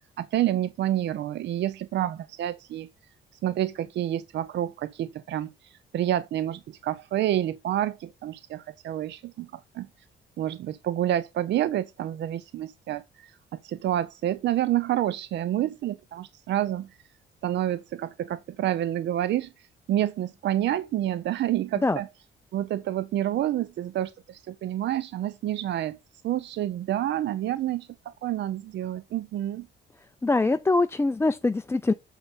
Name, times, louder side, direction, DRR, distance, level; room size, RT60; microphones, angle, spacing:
voice 1, 0.2-2.9 3.4-9.9 10.4-13.4 13.6-16.9 17.4-22.1 22.5-26.0 26.2-29.7, right 12 dB, 60° right, 0.5 m, -28 dB
voice 2, 30.2-31.9, left 3 dB, 15° left, 0.4 m, -23 dB
7.3 x 5.3 x 4.0 m
cardioid pair, 90°, 20 cm